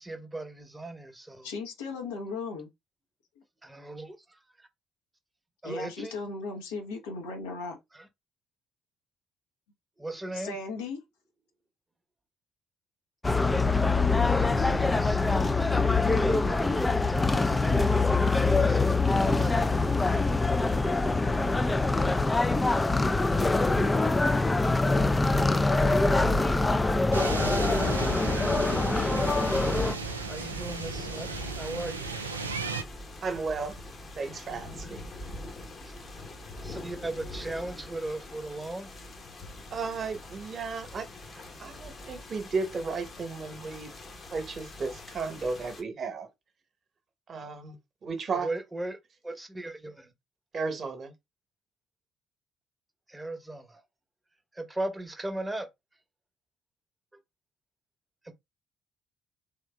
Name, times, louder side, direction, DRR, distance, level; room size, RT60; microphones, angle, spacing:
voice 1, 0.0-1.5 3.6-4.2 5.6-6.1 7.9-8.1 10.0-10.6 14.2-15.5 16.1-17.6 18.3-19.5 30.2-31.3 31.6-32.1 35.8-35.9 36.6-38.9 48.3-49.0 49.2-50.1 53.1-53.8 54.5-55.7 58.2-58.3, right 2 dB, 15° right, 0.9 m, -37 dB
voice 2, 1.4-2.7 5.6-7.8 10.3-11.0, left 3 dB, 75° left, 0.9 m, -36 dB
sound 1, 13.2-29.9, left 3 dB, 20° left, 0.3 m, -24 dB
sound 2, 27.1-32.8, right 4 dB, 85° right, 0.3 m, -35 dB
sound 3, 29.1-45.8, left 1 dB, 40° left, 1.0 m, -43 dB
voice 3, 33.2-33.8 34.1-35.1 39.7-41.0 41.6-43.9 44.3-46.3 47.3-48.5 50.5-51.1, right 4 dB, 45° right, 1.0 m, -34 dB
3.6 x 3.3 x 2.2 m
figure-of-eight pair, 45°, 0 cm